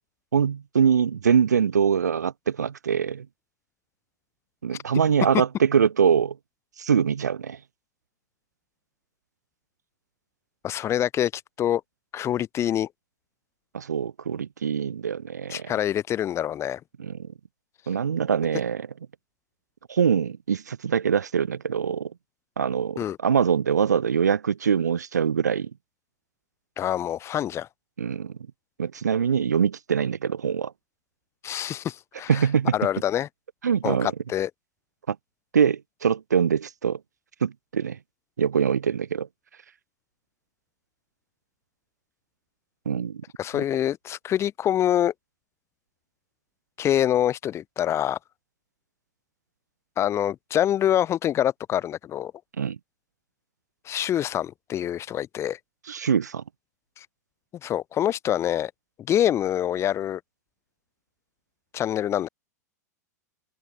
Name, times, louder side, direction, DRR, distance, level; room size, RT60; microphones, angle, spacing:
voice 1, 0.3-3.3 4.6-6.4 6.8-7.6 13.7-15.7 17.0-17.3 17.9-18.9 19.9-22.1 22.6-25.7 28.0-28.3 28.8-30.7 32.3-32.8 33.6-34.1 35.1-35.2 35.5-37.0 37.4-38.0 38.4-39.3 42.9-43.2 52.6-52.8 55.9-56.4, right 7 dB, 75° right, 4.5 m, -23 dB
voice 2, 10.6-11.8 12.1-12.9 15.5-16.8 23.0-23.2 26.8-27.7 31.4-32.4 32.7-33.3 33.8-34.5 43.4-45.1 46.8-48.2 50.0-52.3 53.8-55.6 57.0-57.1 57.6-58.7 59.1-60.2 61.7-62.3, left 11 dB, 30° left, 4.6 m, -25 dB
figure-of-eight pair, 95°, 9 cm